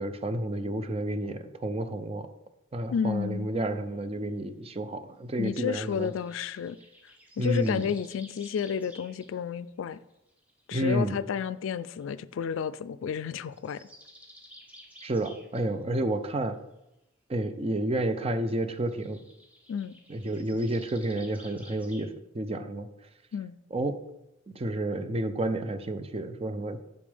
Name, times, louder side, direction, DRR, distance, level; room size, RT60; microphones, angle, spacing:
voice 1, 0.0-2.3 2.7-6.1 7.4-7.9 10.7-11.2 15.0-16.6 17.3-19.2 20.1-22.9 23.7-24.0 24.5-26.8, right 1 dB, 30° right, 0.5 m, -30 dB
voice 2, 2.9-3.5 5.4-6.8 7.4-10.0 10.7-13.9 19.7-19.9 23.3-23.5, left 7 dB, 70° left, 0.3 m, -31 dB
sound 1, 5.9-9.3 9.9-11.0 12.0-12.1 13.4-15.7 18.9-22.1, equal, 10° right, 1.1 m, -53 dB
8.6 x 7.1 x 3.4 m
head